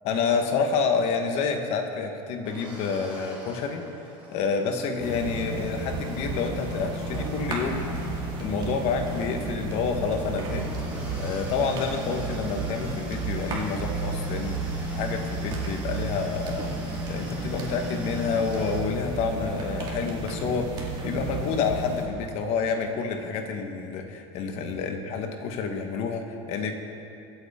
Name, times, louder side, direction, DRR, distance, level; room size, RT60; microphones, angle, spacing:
voice 1, 0.0-3.8 4.3-7.9 8.2-26.7, left 5 dB, 45° left, 5 dB, 1.2 m, -29 dB
sound 1, 2.4-18.8, right 1 dB, 10° right, 2.7 m, -44 dB
sound 2, 5.0-22.0, right 2 dB, 30° right, 2.2 m, -32 dB
24.5 x 8.3 x 3.7 m, 2.7 s
cardioid pair, 160°, 15 cm